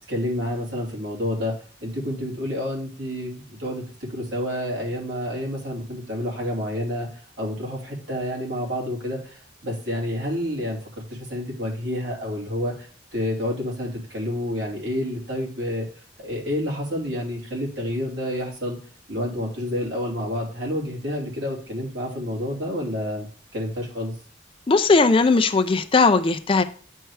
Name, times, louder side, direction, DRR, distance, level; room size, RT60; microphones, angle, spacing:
voice 1, 0.1-1.6 1.8-15.9 16.2-18.8 19.1-24.2, left 1 dB, 75° right, 2.8 m, -29 dB
voice 2, 24.7-26.6, left 4 dB, 25° left, 0.4 m, -18 dB
9.0 x 4.5 x 4.7 m
head